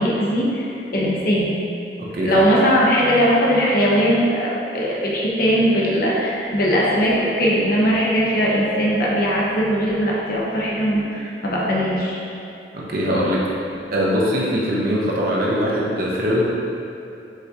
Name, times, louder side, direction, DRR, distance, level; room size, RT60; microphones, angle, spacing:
voice 1, 0.0-1.5 2.2-12.2 13.1-13.2, equal, 55° left, -5 dB, 0.8 m, -19 dB
voice 2, 2.0-2.4 12.7-13.5 13.9-16.4, equal, 55° right, -5 dB, 0.7 m, -21 dB
4.9 x 3.8 x 2.8 m, 2.7 s
head